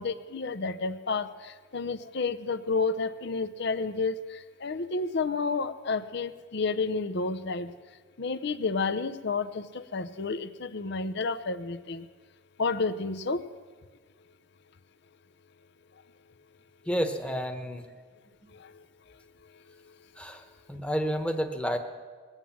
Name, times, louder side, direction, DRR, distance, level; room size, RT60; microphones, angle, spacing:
voice 1, 0.0-7.7 8.2-12.1 12.6-13.4, left 4 dB, 65° left, 12 dB, 0.7 m, -30 dB
voice 2, 16.9-17.9 20.2-21.8, equal, 5° left, 6 dB, 1.1 m, -30 dB
21.0 x 9.0 x 7.4 m, 1.5 s
head